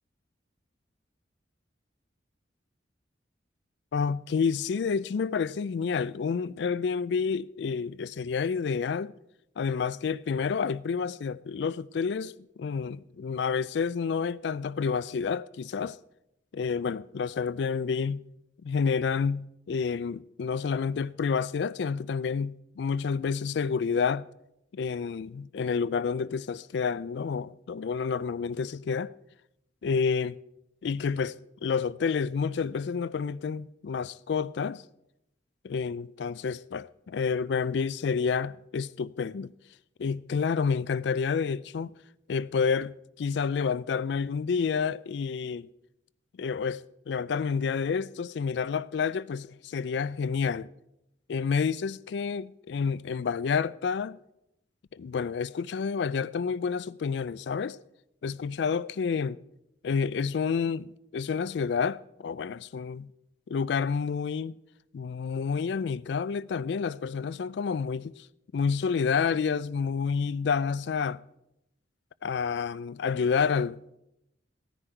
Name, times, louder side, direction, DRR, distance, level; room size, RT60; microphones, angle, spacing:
voice 1, 3.9-9.1 9.6-16.0 16.5-18.2 18.6-24.2 24.7-29.1 29.8-30.4 30.8-34.8 35.6-39.5 40.0-41.9 42.3-45.7 46.4-50.7 51.3-54.2 54.9-57.8 58.2-59.4 59.8-63.1 63.5-64.6 64.9-68.1 68.5-71.2 72.2-73.8, left 5 dB, 65° left, 0.3 m, -29 dB
15.5 x 10.0 x 4.5 m
head